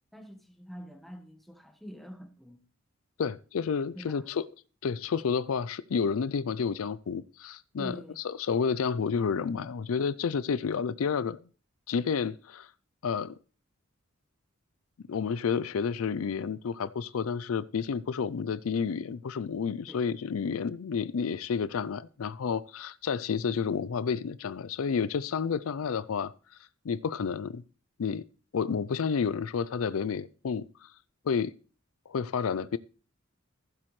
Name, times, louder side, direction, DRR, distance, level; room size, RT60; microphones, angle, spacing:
voice 1, 0.1-2.6 3.9-4.2 7.8-8.2 19.9-20.0, equal, ahead, 1.1 m, -45 dB
voice 2, 3.2-4.5 4.8-11.4 11.9-12.7 13.0-13.4 15.1-26.3 26.8-27.6 28.0-28.2 28.5-30.9 31.2-31.5 32.1-32.8, left 6 dB, 85° left, 0.4 m, -30 dB
15.5 x 7.6 x 3.2 m
head